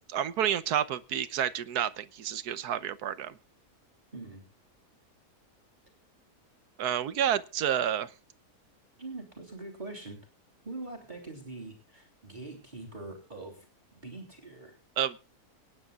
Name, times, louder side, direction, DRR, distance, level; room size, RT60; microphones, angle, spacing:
voice 1, 0.1-3.3 6.8-8.1 15.0-15.2, right 10 dB, 80° right, 15 dB, 1.4 m, -29 dB
voice 2, 4.1-4.4 9.0-10.2 10.6-13.7 13.9-14.8, right 2 dB, 30° right, 1 dB, 3.5 m, -43 dB
24.5 x 10.5 x 2.4 m, 0.30 s
omnidirectional pair, 1.6 m